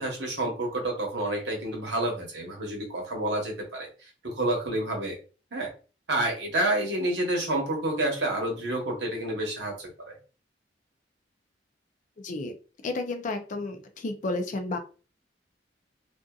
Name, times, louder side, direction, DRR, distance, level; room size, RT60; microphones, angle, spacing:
voice 1, 0.0-3.9 4.2-5.2 5.5-5.7 6.1-10.1, right 1 dB, 70° right, 1 dB, 1.0 m, -29 dB
voice 2, 12.2-12.6 12.8-14.8, left 2 dB, 45° left, 7 dB, 0.4 m, -32 dB
2.6 x 2.5 x 2.3 m, 0.34 s
head